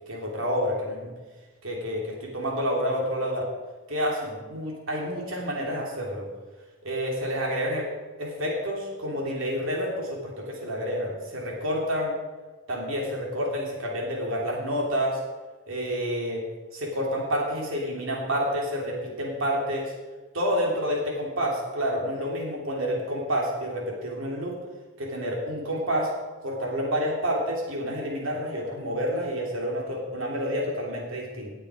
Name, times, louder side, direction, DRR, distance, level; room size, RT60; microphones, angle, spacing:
voice 1, 0.1-1.1 1.6-3.5 3.9-6.3 6.8-7.9 8.2-12.1 12.7-15.2 15.7-16.4 16.7-19.9 20.3-24.5 25.0-26.1 26.4-31.5, equal, 70° right, -1 dB, 3.0 m, -29 dB
18.5 x 6.7 x 4.9 m, 1.3 s
head